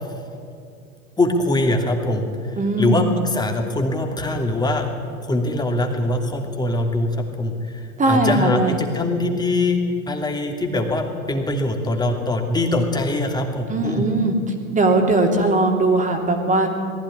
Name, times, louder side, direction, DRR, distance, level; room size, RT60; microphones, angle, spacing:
voice 1, 1.2-4.9 5.2-14.0, left 2 dB, 10° left, 3 dB, 2.7 m, -23 dB
voice 2, 2.6-3.0 8.0-8.8 13.7-14.4 14.7-16.7, right 2 dB, 15° right, 3 dB, 3.1 m, -19 dB
20.5 x 15.0 x 9.8 m, 2.4 s
figure-of-eight pair, 90°, 43 cm